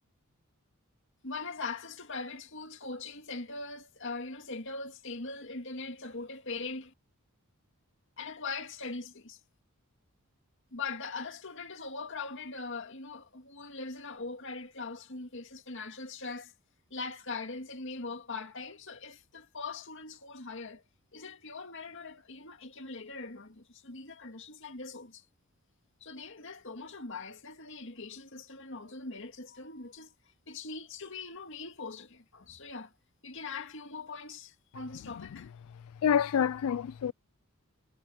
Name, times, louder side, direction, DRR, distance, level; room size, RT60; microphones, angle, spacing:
voice 1, 1.2-6.9 8.2-9.4 10.7-16.5 16.9-20.8 21.1-25.2 26.0-30.1 30.5-32.9 33.2-35.5, left 4 dB, 55° left, 2.3 m, -41 dB
voice 2, 36.0-37.1, left 8 dB, 75° left, 0.3 m, -27 dB
head